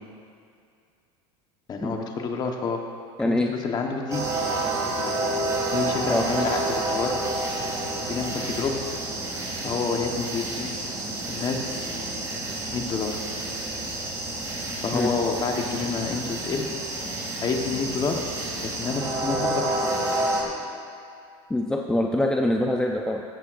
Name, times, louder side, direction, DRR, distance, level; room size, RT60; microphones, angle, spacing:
voice 1, 1.7-2.8 3.2-3.3 3.6-4.2 5.7-7.2 8.1-8.8 9.6-10.7 11.3-11.8 12.7-13.2 14.8-16.7 17.4-18.2 18.6-19.6, left 5 dB, 30° left, 3 dB, 1.2 m, -28 dB
voice 2, 3.2-3.5 6.1-6.3 14.9-15.1 21.5-23.2, left 1 dB, 5° left, 1 dB, 0.5 m, -24 dB
sound 1, 4.1-20.4, right 2 dB, 20° right, 2.5 m, -29 dB
15.0 x 14.0 x 2.6 m, 2.4 s
supercardioid pair, 140°, 14 cm